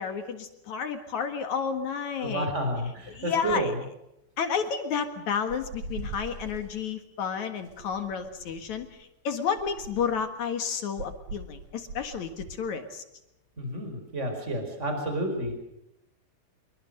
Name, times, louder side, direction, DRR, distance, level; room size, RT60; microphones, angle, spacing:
voice 1, 0.0-2.5 3.2-3.7 4.4-13.0, left 6 dB, 55° left, 8 dB, 2.7 m, -31 dB
voice 2, 2.2-3.8 13.6-15.6, right 1 dB, 15° right, 5 dB, 5.0 m, -30 dB
sound 1, 5.5-6.7 7.6-8.9 9.5-10.2 11.0-12.6, right 3 dB, 60° right, 7.0 m, -41 dB
26.0 x 23.5 x 6.6 m, 0.83 s
omnidirectional pair, 4.4 m